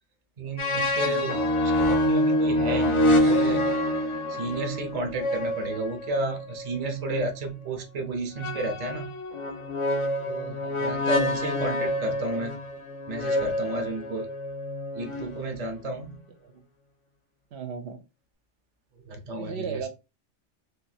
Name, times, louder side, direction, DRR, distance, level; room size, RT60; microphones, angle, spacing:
voice 1, 0.4-1.4 1.8-3.7 4.3-9.1 10.3-12.5 13.1-14.3 14.9-16.2 19.1-19.8, right 2 dB, 40° right, 5 dB, 0.7 m, -32 dB
sound 1, 0.6-7.3 8.4-15.7, left 1 dB, 40° left, 0.5 m, -27 dB
voice 2, 1.0-1.4 10.6-11.1 16.4-16.6 17.5-18.0 19.4-19.9, right 5 dB, 65° right, 8 dB, 0.9 m, -37 dB
2.6 x 2.3 x 4.0 m, 0.27 s
omnidirectional pair, 1.2 m